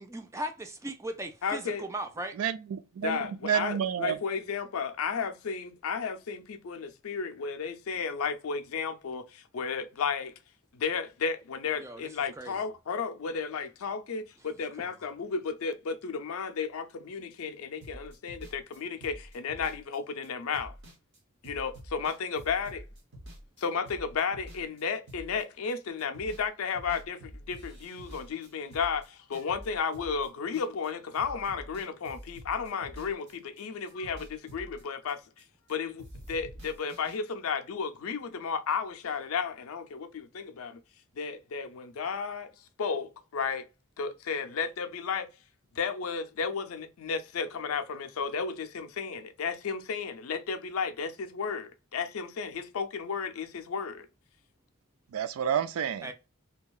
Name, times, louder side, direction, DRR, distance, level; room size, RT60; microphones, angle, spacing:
voice 1, 0.0-2.4 11.8-12.6 14.8-14.9 56.0-56.1, right 1 dB, 15° right, 0.4 m, -38 dB
voice 2, 1.4-1.8 3.0-10.3 10.7-20.7 21.4-22.8 23.6-35.2 35.7-40.8 41.2-42.5 42.8-43.7 44.0-45.3 45.8-54.1, left 5 dB, 80° left, 0.5 m, -33 dB
voice 3, 2.4-4.2 55.1-56.1, right 8 dB, 85° right, 0.3 m, -30 dB
sound 1, 17.8-25.7 26.0-26.5 26.7-30.9 31.1-33.6 33.9-35.7 36.0-37.2, equal, 60° right, 1.1 m, -48 dB
2.8 x 2.3 x 2.3 m
head